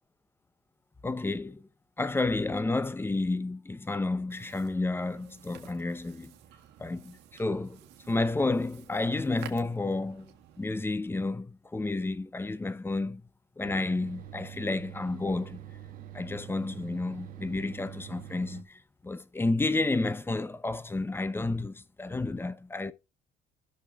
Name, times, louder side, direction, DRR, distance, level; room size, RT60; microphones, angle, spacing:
voice 1, 1.0-1.7 2.0-6.3 6.8-7.8 8.1-13.2 13.6-15.6 16.1-22.9, left 2 dB, 15° left, 0.7 m, -31 dB
sound 1, 4.3-10.7, right 12 dB, 85° right, 1.7 m, -52 dB
sound 2, 13.6-18.6, right 11 dB, 55° right, 1.2 m, -45 dB
15.0 x 6.6 x 2.4 m
cardioid pair, 110°, 17 cm